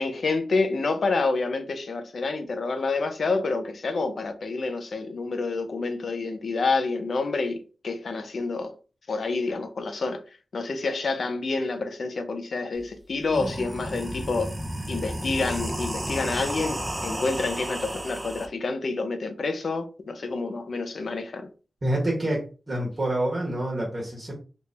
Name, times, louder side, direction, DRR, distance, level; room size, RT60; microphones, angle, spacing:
voice 1, 0.0-8.8 9.1-10.2 10.5-14.6 14.9-21.5, left 3 dB, 60° left, 0.6 m, -28 dB
sound 1, 12.7-12.8 13.2-18.5, right 1 dB, 10° right, 0.6 m, -32 dB
voice 2, 21.8-24.4, right 1 dB, 35° right, 1.1 m, -27 dB
3.4 x 2.6 x 3.3 m
wide cardioid pair, 105°, 0 cm